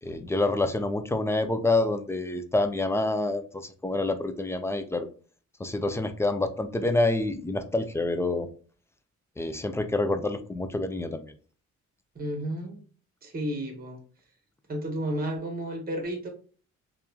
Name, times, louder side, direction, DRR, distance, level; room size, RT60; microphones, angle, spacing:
voice 1, 0.0-5.1 5.6-8.5 9.4-11.2, left 2 dB, 10° left, 0.3 m, -27 dB
voice 2, 12.1-12.8 13.2-14.0 14.7-16.3, right 1 dB, 30° right, 0.9 m, -32 dB
2.9 x 2.3 x 2.2 m
cardioid pair, 90°, 30 cm